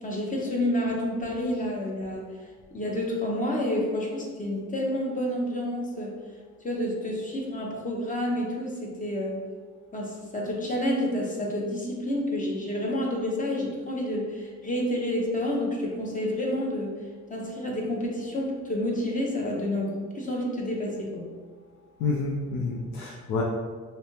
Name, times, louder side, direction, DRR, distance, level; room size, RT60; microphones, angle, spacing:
voice 1, 0.0-2.3 2.7-6.1 6.6-9.4 9.9-16.9 17.3-21.2, left 1 dB, 25° left, -2 dB, 0.8 m, -29 dB
voice 2, 22.0-23.4, left 3 dB, 90° left, -1 dB, 0.5 m, -28 dB
3.2 x 2.8 x 2.8 m, 1.6 s
cardioid pair, 90°, 30 cm